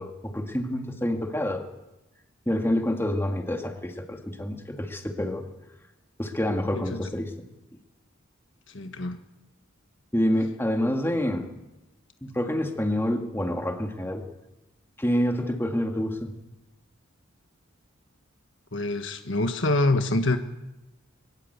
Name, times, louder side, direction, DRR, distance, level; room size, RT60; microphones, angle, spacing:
voice 1, 0.0-1.7 2.5-5.5 6.2-7.3 10.1-11.5 12.2-14.2 15.0-16.3, left 1 dB, 10° left, 4 dB, 2.2 m, -27 dB
voice 2, 8.7-9.2 18.7-20.4, left 2 dB, 60° left, 7 dB, 1.5 m, -25 dB
23.5 x 20.5 x 8.3 m, 0.99 s
head